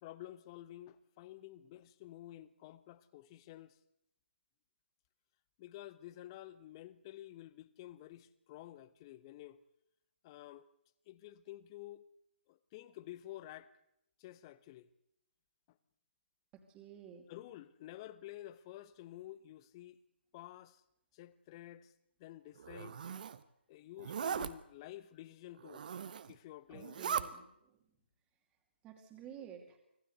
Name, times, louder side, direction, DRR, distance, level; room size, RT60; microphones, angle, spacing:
voice 1, 0.0-3.8 5.6-9.6 10.2-10.7 11.1-12.1 12.5-13.7 14.2-14.9 17.3-20.0 20.3-20.8 21.1-21.9 22.2-23.0 23.7-25.8 26.3-27.0, left 14 dB, 25° left, 1.0 m, -51 dB
voice 2, 16.5-17.3 26.7-27.9 28.5-29.8, right 8 dB, 15° right, 2.5 m, -53 dB
Zipper (clothing), 22.6-23.4 24.0-24.5 25.6-26.3 26.7-27.3, right 7 dB, 45° right, 1.2 m, -39 dB
25.5 x 15.5 x 8.0 m
figure-of-eight pair, 150°, 6 cm